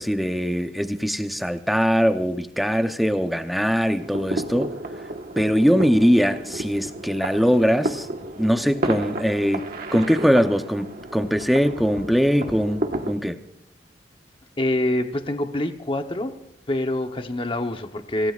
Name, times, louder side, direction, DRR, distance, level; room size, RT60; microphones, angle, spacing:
voice 1, 0.0-4.7 5.4-8.1 8.4-12.8 13.1-13.4, equal, ahead, 0.8 m, -21 dB
sound 1, 4.0-13.1, right 1 dB, 55° right, 1.4 m, -32 dB
voice 2, 14.6-16.3 16.7-18.3, left 1 dB, 30° left, 0.9 m, -25 dB
26.0 x 17.5 x 2.5 m
head